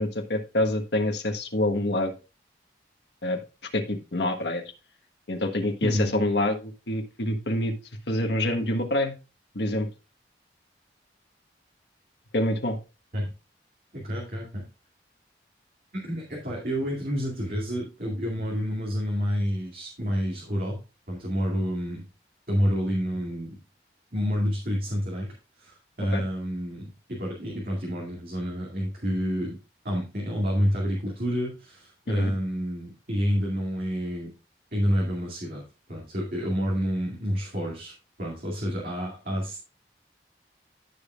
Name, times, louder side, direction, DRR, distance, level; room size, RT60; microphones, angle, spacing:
voice 1, 0.0-2.1 3.2-3.4 3.7-4.6 5.3-7.7 8.1-9.1 9.5-9.9 12.3-12.8 26.1-26.2 32.1-32.3, left 1 dB, 70° left, 5 dB, 1.3 m, -26 dB
voice 2, 5.8-6.1 13.1-13.3 13.9-14.6 15.9-20.8 21.1-22.0 22.5-23.6 24.1-25.3 25.6-29.6 29.8-34.3 34.7-35.6 35.9-37.9 38.2-39.6, equal, 50° right, -3 dB, 2.3 m, -29 dB
14.5 x 5.4 x 2.4 m, 0.30 s
head